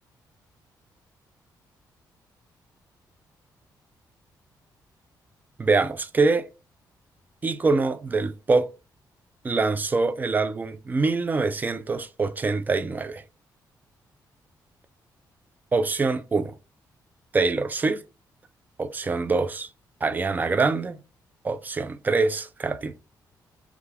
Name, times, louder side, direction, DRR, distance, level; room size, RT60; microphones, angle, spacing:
voice 1, 5.6-6.5 7.4-8.7 9.4-13.2 15.7-16.6 17.3-18.0 18.8-19.7 20.0-21.0 21.4-23.0, right 3 dB, 25° right, 0.3 m, -24 dB
2.4 x 2.3 x 3.3 m
cardioid pair, 110°, 7 cm